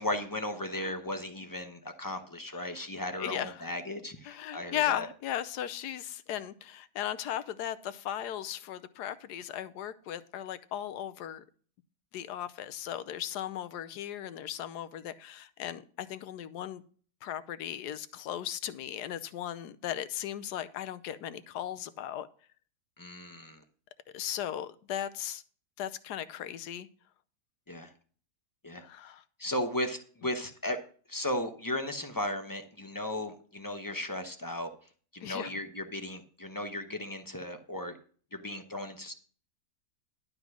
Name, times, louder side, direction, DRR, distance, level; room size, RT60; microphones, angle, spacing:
voice 1, 0.0-5.1 23.0-23.6 27.7-27.9 28.6-28.8 29.4-30.8 31.1-34.7 35.1-38.0 38.3-39.1, left 1 dB, 20° left, 0.7 m, -36 dB
voice 2, 3.2-3.7 4.2-11.4 12.1-16.8 17.2-22.3 24.1-25.4 25.8-26.9 28.8-29.2 35.2-35.5, left 11 dB, 80° left, 1.3 m, -37 dB
11.5 x 5.2 x 6.1 m
omnidirectional pair, 1.7 m